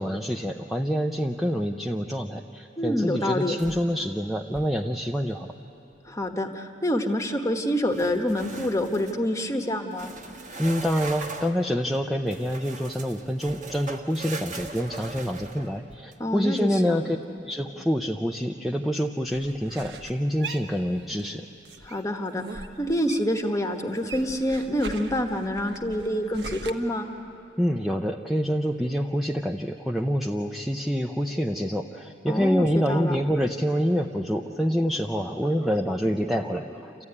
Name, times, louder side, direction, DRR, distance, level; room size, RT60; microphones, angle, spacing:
voice 1, 0.0-5.5 10.6-17.2 17.4-21.5 27.6-37.0, equal, ahead, 2 dB, 0.5 m, -26 dB
voice 2, 2.8-3.6 6.1-10.1 16.2-17.0 21.8-27.1 32.3-33.1, equal, 15° left, 5 dB, 1.2 m, -27 dB
sound 1, 3.6-4.1 4.4-4.8 7.9-9.2 9.9-11.6 12.3-16.1, right 3 dB, 40° right, 1.5 m, -40 dB
sound 2, 19.3-21.4 21.6-23.5 23.7-26.7, right 3 dB, 65° right, 1.2 m, -40 dB
28.0 x 14.5 x 9.7 m, 2.9 s
head